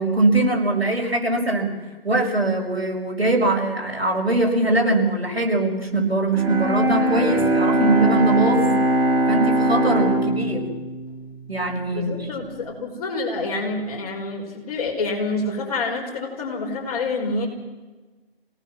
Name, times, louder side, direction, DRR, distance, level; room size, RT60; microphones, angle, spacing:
voice 1, 0.0-1.7 2.0-8.7 9.3-10.6 11.5-12.1, right 2 dB, 85° right, 0 dB, 6.4 m, -21 dB
Bowed string instrument, 6.3-12.3, right 1 dB, 10° right, 2.7 m, -22 dB
voice 2, 11.9-17.5, left 3 dB, 40° left, 0 dB, 5.5 m, -27 dB
27.5 x 18.5 x 6.2 m, 1.2 s
figure-of-eight pair, 145°, 30 cm